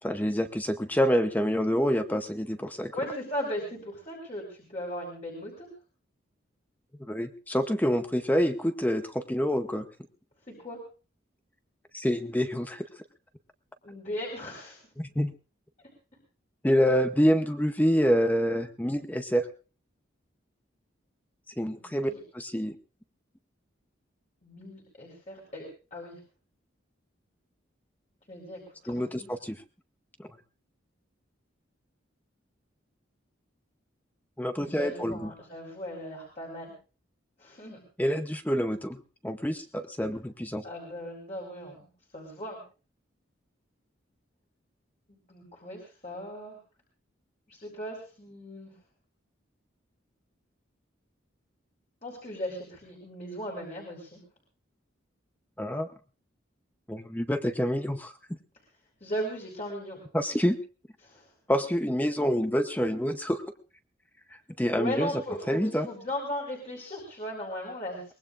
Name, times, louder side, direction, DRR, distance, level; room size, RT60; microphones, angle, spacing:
voice 1, 0.0-2.9 7.1-9.9 11.9-12.9 15.0-15.3 16.6-19.5 21.6-22.8 28.9-29.6 34.4-35.3 38.0-39.0 39.2-40.6 55.6-55.9 56.9-58.1 60.1-60.6 61.5-63.4 64.6-65.1 65.5-65.9, equal, 10° left, 8 dB, 0.7 m, -27 dB
voice 2, 2.9-5.7 10.4-10.8 13.8-14.8 21.7-22.2 24.4-25.6 25.9-26.2 28.3-29.3 34.6-36.7 37.4-37.8 40.6-42.6 45.1-46.6 47.5-48.8 52.0-54.2 59.0-60.0 61.0-61.3 64.7-68.1, equal, 35° left, -2 dB, 4.0 m, -37 dB
23.0 x 20.0 x 2.5 m, 0.36 s
head